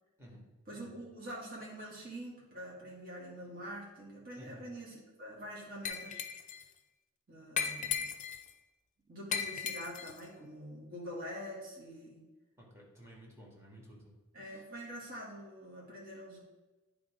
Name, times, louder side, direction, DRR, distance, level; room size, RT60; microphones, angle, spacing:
voice 1, 0.7-6.2 7.3-8.1 9.1-12.2 14.3-16.4, equal, 45° right, -5 dB, 1.8 m, -45 dB
Glass, 5.8-6.6 7.6-8.5 9.3-10.2, left 7 dB, 35° left, 0.6 m, -36 dB
voice 2, 12.6-14.1 14.4-14.6, equal, 15° right, -2 dB, 1.9 m, -54 dB
9.7 x 3.6 x 5.0 m, 1.1 s
head